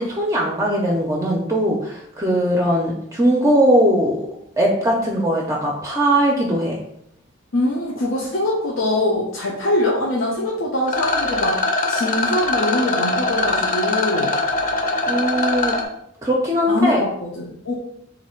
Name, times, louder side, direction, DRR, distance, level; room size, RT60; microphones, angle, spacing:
voice 1, 0.0-4.2 4.6-6.8 15.1-15.8 16.2-17.0, equal, 15° right, -2 dB, 0.5 m, -19 dB
voice 2, 7.5-11.6 11.9-14.3 16.7-17.7, left 1 dB, 85° left, -3 dB, 0.6 m, -23 dB
Rattle, 10.9-15.8, left 2 dB, 45° left, 0.7 m, -22 dB
3.2 x 2.6 x 4.3 m, 0.73 s
head